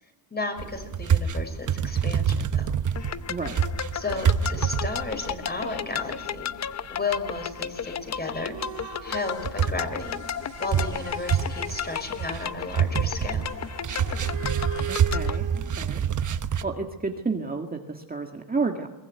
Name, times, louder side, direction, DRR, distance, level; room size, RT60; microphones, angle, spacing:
voice 1, 0.3-2.7 3.9-6.5 6.9-8.6 9.0-10.2 10.6-13.4, left 3 dB, 20° left, 6 dB, 5.7 m, -33 dB
sound 1, 0.6-6.0 6.4-6.5 6.9-7.4 7.8-7.9 8.2-8.3 8.6-8.8 9.1-16.6, right 7 dB, 40° right, 1.2 m, -26 dB
sound 2, 2.9-15.4, left 8 dB, 35° left, 0.8 m, -34 dB
sound 3, 8.4-9.6 10.0-12.5 13.4-16.1, right 10 dB, 70° right, 2.7 m, -40 dB
voice 2, 14.9-16.0 16.6-18.9, right 4 dB, 20° right, 3 dB, 1.9 m, -31 dB
22.5 x 20.5 x 9.5 m, 1.2 s
cardioid pair, 115°, 46 cm